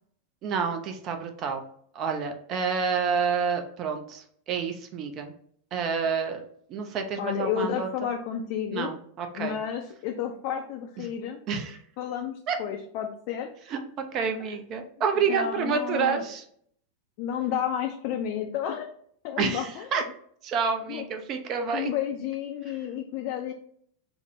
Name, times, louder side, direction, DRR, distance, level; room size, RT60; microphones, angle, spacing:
voice 1, 0.4-1.6 2.0-5.3 5.7-6.4 6.7-7.9 8.7-9.6 11.0-11.1 11.5-11.8 12.5-12.6 13.7-13.8 14.1-16.4 19.4-20.0 20.4-21.9, right 6 dB, 35° right, 6 dB, 0.4 m, -28 dB
voice 2, 7.2-8.9 9.3-11.4 12.0-13.5 14.4-14.6 15.2-16.2 17.2-18.9 19.2-20.0 20.9-21.1 21.7-23.5, left 9 dB, 45° left, 3 dB, 0.3 m, -31 dB
3.6 x 2.0 x 2.5 m, 0.64 s
figure-of-eight pair, 90°, 0 cm